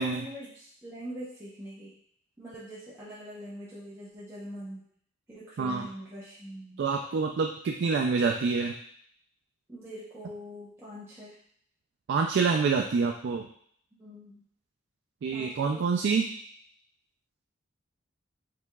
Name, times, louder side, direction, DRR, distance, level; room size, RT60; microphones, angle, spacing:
voice 1, 0.0-1.9 2.4-4.8 5.3-6.8 9.7-11.3 14.0-14.4 15.3-15.8, equal, 15° right, -10 dB, 0.8 m, -43 dB
voice 2, 6.8-8.7 12.1-13.5 15.2-16.3, right 5 dB, 60° right, 2 dB, 0.3 m, -26 dB
4.8 x 3.5 x 2.3 m, 0.64 s
head